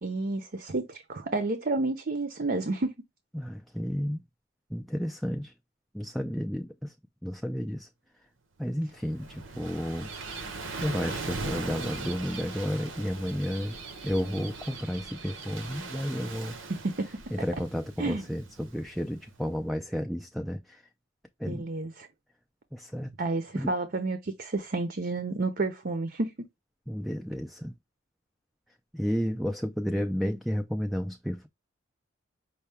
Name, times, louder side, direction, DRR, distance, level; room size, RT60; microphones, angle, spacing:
voice 1, 0.0-2.9 16.7-17.1 18.0-18.2 21.5-22.1 23.2-26.3, right 2 dB, 50° right, 0.7 m, -30 dB
voice 2, 3.3-4.2 4.7-5.5 5.9-6.9 7.2-7.9 8.6-10.1 10.8-13.8 14.0-16.6 17.3-20.8 21.4-21.7 22.7-23.1 23.6-23.7 26.9-27.7 28.9-31.5, equal, ahead, 0.4 m, -32 dB
Gull seagull / Waves surf, 8.8-19.4, right 3 dB, 80° right, 0.9 m, -40 dB
5.5 x 2.3 x 3.4 m
head